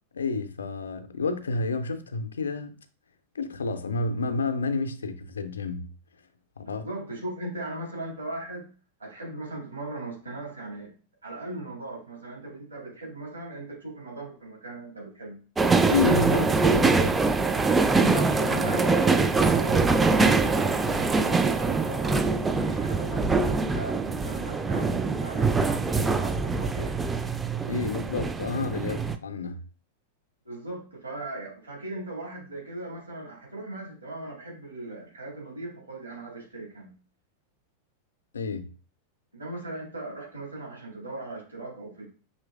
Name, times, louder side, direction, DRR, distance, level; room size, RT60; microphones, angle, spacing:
voice 1, 0.1-2.7 3.3-6.0 6.6-6.8 15.8-17.2 27.6-29.6 38.3-38.7, left 3 dB, 70° left, 0.4 m, -29 dB
voice 2, 6.6-8.7 9.0-10.9 11.2-15.4 17.9-27.0 30.5-36.9 39.3-42.1, right 2 dB, 80° right, 2.0 m, -38 dB
sound 1, 15.6-29.2, right 4 dB, 15° right, 0.3 m, -24 dB
5.4 x 3.0 x 2.4 m
figure-of-eight pair, 90°, 0 cm